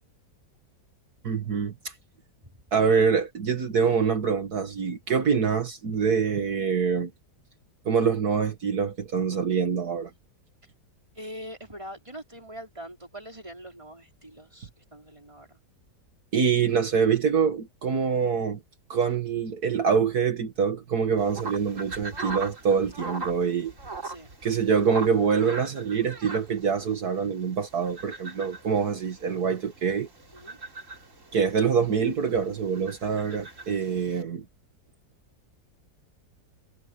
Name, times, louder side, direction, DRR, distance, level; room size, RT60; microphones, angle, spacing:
voice 1, 1.2-1.9 2.7-7.1 7.9-10.1 16.3-18.6 18.9-23.7 24.4-30.1 31.3-34.4, right 6 dB, 65° right, 2.1 m, -25 dB
voice 2, 11.1-15.6 24.0-24.3 30.3-30.6 33.9-34.0, equal, 15° right, 4.7 m, -43 dB
sound 1, 21.2-34.2, right 3 dB, 45° right, 3.4 m, -41 dB
omnidirectional pair, 1.8 m